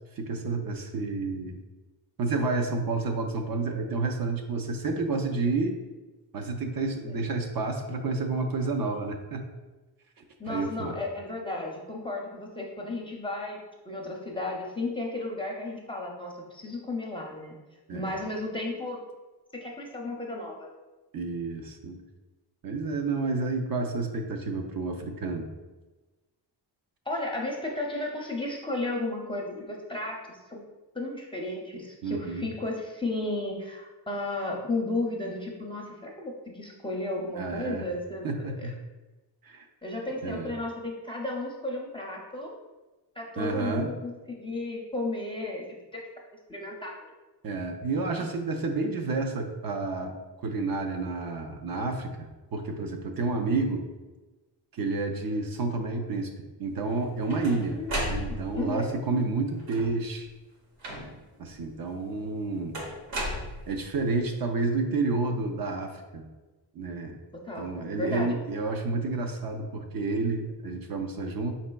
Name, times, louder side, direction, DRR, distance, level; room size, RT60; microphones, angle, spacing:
voice 1, 0.2-1.6 2.2-5.8 6.3-9.4 10.5-11.0 17.9-18.0 21.1-22.0 22.6-25.5 32.0-32.5 37.3-37.9 38.2-38.7 39.4-39.7 40.2-40.5 43.4-43.9 47.4-50.1 50.4-53.9 54.7-56.3 56.6-57.8 58.1-60.3 61.4-62.8 63.7-66.3 66.7-67.2 67.6-71.5, right 3 dB, 55° right, 4 dB, 0.5 m, -30 dB
voice 2, 10.4-17.5 17.9-19.0 19.5-20.8 27.1-30.2 30.5-30.6 30.9-38.7 39.8-42.5 43.2-45.6 45.9-46.0 46.5-47.1 57.7-58.9 67.4-67.7 68.0-68.3, left 2 dB, 10° left, -2 dB, 0.5 m, -34 dB
sound 1, 56.9-58.7 59.6-60.1 60.8-61.4 62.7-64.0, equal, 85° right, 1.1 m, -34 dB
5.0 x 4.2 x 2.2 m, 1.2 s
wide cardioid pair, 165°, 43 cm